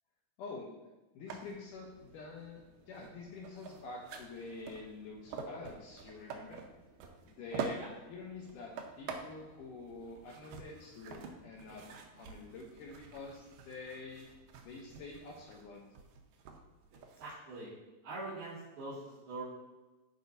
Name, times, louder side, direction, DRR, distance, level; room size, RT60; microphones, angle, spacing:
voice 1, 0.4-0.7 1.1-6.6 7.3-14.3 14.7-15.9, left 3 dB, 75° left, -2 dB, 2.3 m, -47 dB
sound 1, 1.3-17.3, right 5 dB, 80° right, 2.4 m, -47 dB
voice 2, 17.2-17.7 18.0-19.4, right 2 dB, 60° right, -13 dB, 3.8 m, -43 dB
14.5 x 5.0 x 2.7 m, 1.1 s
omnidirectional pair, 4.0 m